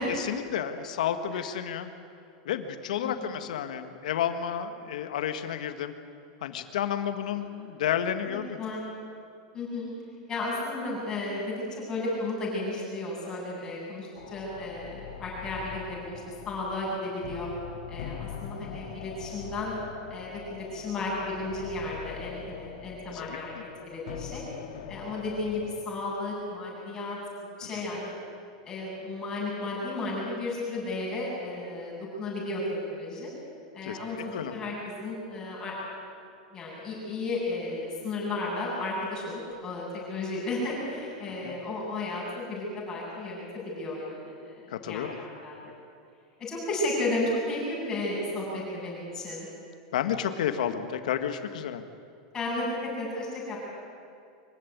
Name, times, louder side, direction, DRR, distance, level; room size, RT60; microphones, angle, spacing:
voice 1, 0.1-1.9 2.4-5.9 6.4-8.6 23.1-23.6 27.7-27.9 33.8-34.6 41.4-41.6 44.7-45.2 49.9-51.8, left 9 dB, 85° left, 9 dB, 1.7 m, -31 dB
voice 2, 8.3-8.8 9.5-9.9 10.3-17.5 17.9-19.7 20.1-24.4 24.9-28.1 28.6-32.6 32.9-33.3 33.7-35.7 36.5-45.7 46.4-49.5 52.3-53.6, left 2 dB, 15° left, -6 dB, 7.9 m, -34 dB
sound 1, 14.2-25.9, left 8 dB, 55° left, 1.8 m, -43 dB
24.5 x 15.5 x 9.5 m, 2.4 s
supercardioid pair, 175°, 4 cm